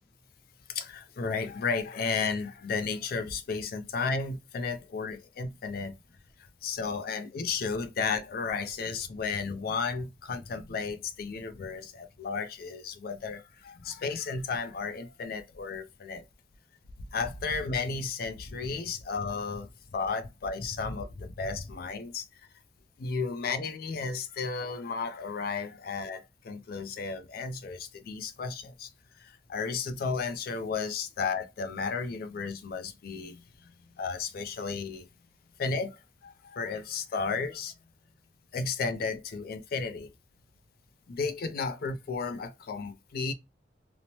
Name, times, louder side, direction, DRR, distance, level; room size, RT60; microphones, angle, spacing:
voice 1, 0.7-5.9 6.6-16.2 17.1-22.3 23.0-28.9 29.2-33.7 34.0-35.1 35.6-37.7 38.5-40.1 41.1-43.3, left 4 dB, 55° left, 0.4 m, -33 dB
2.9 x 2.0 x 2.7 m
head